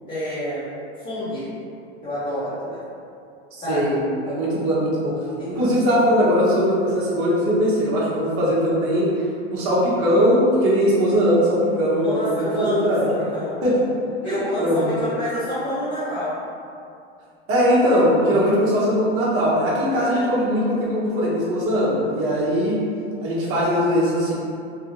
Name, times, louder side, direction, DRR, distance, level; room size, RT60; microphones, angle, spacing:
voice 1, 0.1-0.7 1.0-1.4 2.0-2.8 3.6-3.8 5.4-5.6 11.9-13.5 14.2-16.3 19.8-20.2, left 1 dB, 25° left, -13 dB, 1.2 m, -28 dB
voice 2, 3.7-4.0 4.2-5.1 5.5-9.2 9.5-13.1 13.6-13.7 14.2-14.9 17.5-22.8 23.2-24.3, equal, 45° right, -7 dB, 1.1 m, -20 dB
3.2 x 2.4 x 3.0 m, 2.5 s
supercardioid pair, 120°, 31 cm